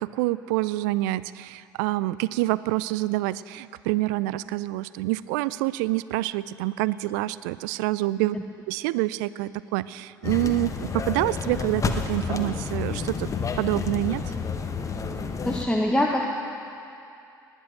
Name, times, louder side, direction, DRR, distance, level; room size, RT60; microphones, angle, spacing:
voice 1, 0.0-8.4 8.7-13.3 13.6-14.2, right 18 dB, 65° right, 18 dB, 0.4 m, -27 dB
sound 1, 10.2-15.6, left 5 dB, 30° left, 1.1 m, -30 dB
voice 2, 15.4-16.2, left 1 dB, 10° left, 0 dB, 1.3 m, -23 dB
19.5 x 8.1 x 7.7 m, 2.6 s
figure-of-eight pair, 55°, 11 cm